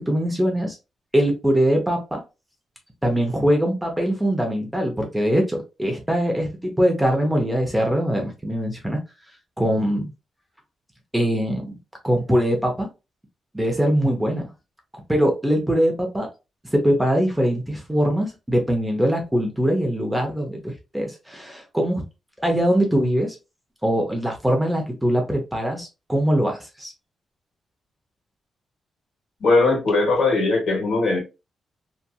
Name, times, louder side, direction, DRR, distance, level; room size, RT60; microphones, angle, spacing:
voice 1, 0.1-0.8 1.1-2.2 3.0-9.0 9.6-10.1 11.1-11.7 12.0-12.9 13.5-14.5 15.1-16.3 16.7-22.0 22.4-23.4 23.8-26.9, equal, 5° right, 0.6 m, -22 dB
voice 2, 29.4-31.2, left 3 dB, 65° left, 1.3 m, -19 dB
2.7 x 2.4 x 2.3 m
wide cardioid pair, 145°, 0 cm